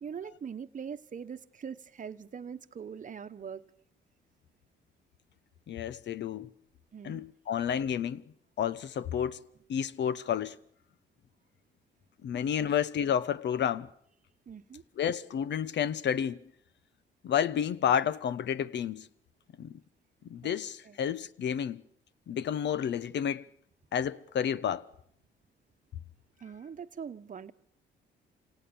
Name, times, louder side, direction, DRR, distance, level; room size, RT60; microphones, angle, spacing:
voice 1, 0.0-3.6 6.9-7.2 12.6-12.7 14.5-14.8 20.4-20.5 20.8-21.0 26.4-27.5, right 7 dB, 40° right, 1.1 m, -42 dB
voice 2, 5.7-6.5 7.0-8.2 8.6-9.4 9.7-10.6 12.2-13.9 15.0-16.4 17.2-19.1 19.6-19.8 20.3-21.8 22.3-23.4 23.9-24.9, left 8 dB, 65° left, 1.0 m, -30 dB
27.0 x 18.0 x 7.0 m
cardioid pair, 90°, 20 cm